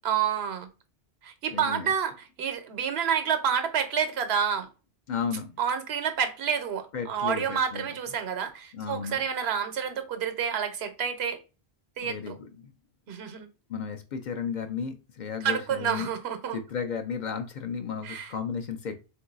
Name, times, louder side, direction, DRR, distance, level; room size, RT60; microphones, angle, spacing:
voice 1, 0.0-0.7 1.2-4.7 5.6-11.4 12.0-12.4 13.1-13.5 15.4-16.6 18.0-18.3, right 7 dB, 90° right, 1.0 m, -29 dB
voice 2, 1.5-1.9 5.1-5.5 6.9-7.9 8.7-9.2 12.0-12.7 13.7-16.1 16.5-19.0, left 6 dB, 55° left, 0.6 m, -34 dB
3.8 x 2.6 x 2.3 m
omnidirectional pair, 1.0 m